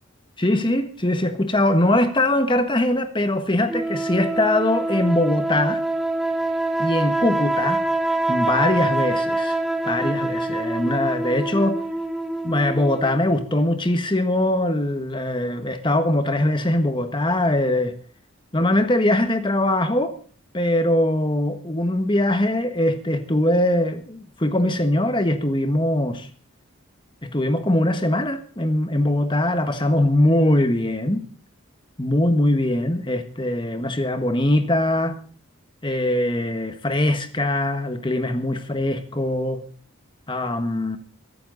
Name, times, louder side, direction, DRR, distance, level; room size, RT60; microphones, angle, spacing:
voice 1, 0.4-5.8 6.8-7.8 8.3-9.6 9.8-11.8 12.4-17.9 18.5-20.2 20.5-26.3 27.2-31.3 32.0-35.2 35.8-39.6 40.3-41.0, left 1 dB, 20° left, 1.5 m, -22 dB
sound 1, 3.7-13.4, right 2 dB, ahead, 1.3 m, -25 dB
22.0 x 11.5 x 4.0 m
head